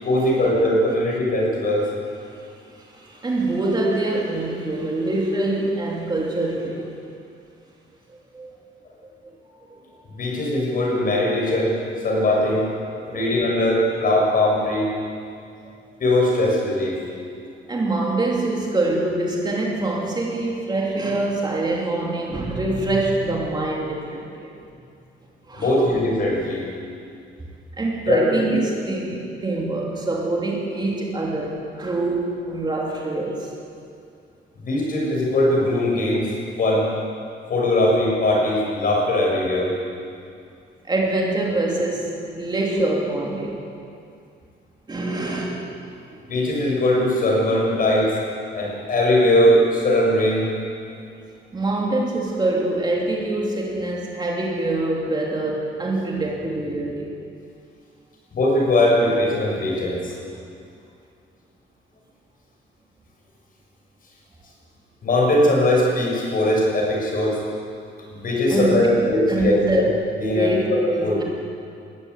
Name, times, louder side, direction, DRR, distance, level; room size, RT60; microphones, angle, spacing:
voice 1, 0.0-1.8 10.1-11.7 12.0-12.7 13.1-14.9 16.0-17.0 25.6-26.7 28.1-28.6 34.6-36.3 36.6-36.9 37.5-39.7 46.3-48.1 48.5-50.5 58.3-60.1 65.0-67.4 68.1-69.9 70.2-71.2, left 1 dB, 45° left, -2 dB, 6.6 m, -20 dB
voice 2, 2.2-6.8 8.3-8.6 9.0-9.1 9.5-9.7 12.9-13.5 15.8-15.9 17.7-24.5 25.5-25.7 27.8-33.5 40.8-43.7 44.9-45.6 46.1-46.2 51.5-57.2 68.5-68.9 69.3-69.8 70.3-70.6 70.9-71.2, right 2 dB, 20° right, -2 dB, 3.0 m, -25 dB
21.0 x 15.0 x 9.5 m, 2.4 s
cardioid pair, 150°, 19 cm